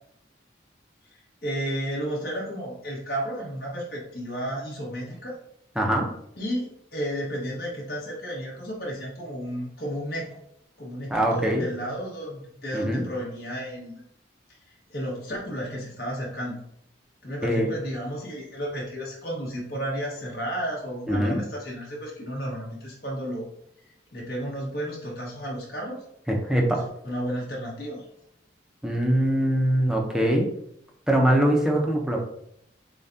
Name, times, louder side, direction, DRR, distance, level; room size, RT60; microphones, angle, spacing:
voice 1, 1.4-5.4 6.4-10.3 10.8-13.9 14.7-16.6 17.2-23.5 24.1-26.0 27.0-28.1, equal, 55° left, -3 dB, 1.5 m, -32 dB
voice 2, 5.8-6.1 11.1-11.6 12.7-13.0 17.4-17.7 21.1-21.4 26.3-26.9 28.8-30.5 31.1-32.2, right 1 dB, 5° right, -1 dB, 0.6 m, -22 dB
6.8 x 2.3 x 2.7 m, 0.74 s
head